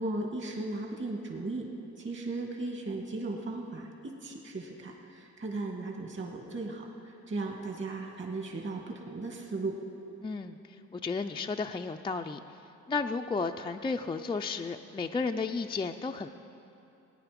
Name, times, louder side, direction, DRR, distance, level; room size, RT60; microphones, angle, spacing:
voice 1, 0.0-1.7 2.0-9.8, right 2 dB, 40° right, 1 dB, 2.1 m, -36 dB
voice 2, 10.2-12.4 12.9-16.3, left 4 dB, 15° left, 4 dB, 0.4 m, -33 dB
18.0 x 9.8 x 5.2 m, 2.8 s
cardioid pair, 90°, 30 cm